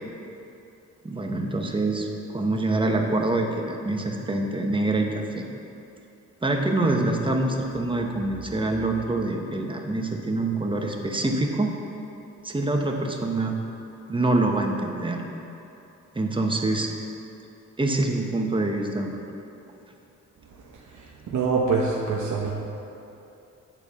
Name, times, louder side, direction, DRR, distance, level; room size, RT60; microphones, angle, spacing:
voice 1, 1.0-5.4 6.4-11.7 12.4-13.5 14.1-15.2 16.1-16.9 17.8-19.2, right 2 dB, 15° right, 2 dB, 1.0 m, -25 dB
voice 2, 20.9-22.5, right 4 dB, 70° right, -3 dB, 1.0 m, -25 dB
9.0 x 4.5 x 6.9 m, 2.9 s
cardioid pair, 85°, 31 cm